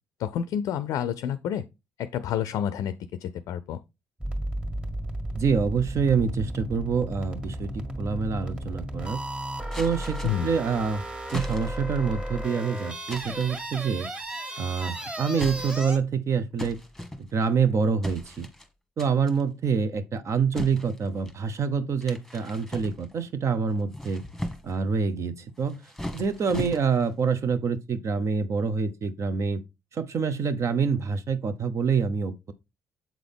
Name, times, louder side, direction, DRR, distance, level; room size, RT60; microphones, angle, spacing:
voice 1, 0.2-1.6 2.0-2.9 3.2-3.8 10.2-10.6, left 9 dB, 70° left, 0.4 m, -29 dB
sound 1, 4.2-16.0, right 1 dB, 15° right, 1.7 m, -34 dB
voice 2, 5.3-9.2 9.8-11.0 11.3-14.1 14.6-16.8 17.2-18.5 19.0-24.2 24.6-25.8 26.1-29.6 29.9-32.5, right 5 dB, 55° right, 0.9 m, -26 dB
sound 2, 9.7-10.6 11.3-11.9 13.1-13.6 14.5-14.9 15.3-16.0 16.6-17.6 18.0-18.7 19.0-19.4 20.5-21.4 22.0-23.3 23.8-24.8 25.6-27.2, left 1 dB, 5° left, 1.3 m, -38 dB
7.4 x 3.9 x 3.5 m
hypercardioid pair, 55°, 6 cm